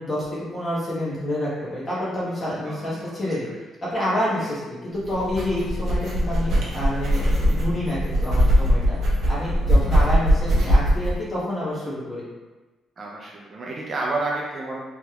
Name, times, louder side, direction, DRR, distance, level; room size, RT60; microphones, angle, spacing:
voice 1, 0.0-3.5 3.9-9.0 9.3-12.2, left 1 dB, 20° left, -9 dB, 1.2 m, -28 dB
voice 2, 2.6-3.6 4.4-4.5 13.0-14.8, right 2 dB, 35° right, -2 dB, 0.4 m, -31 dB
sound 1, 5.0-11.1, equal, 60° right, 0.7 m, -21 dB
3.4 x 2.9 x 2.3 m, 1.2 s
cardioid pair, 155°, 0 cm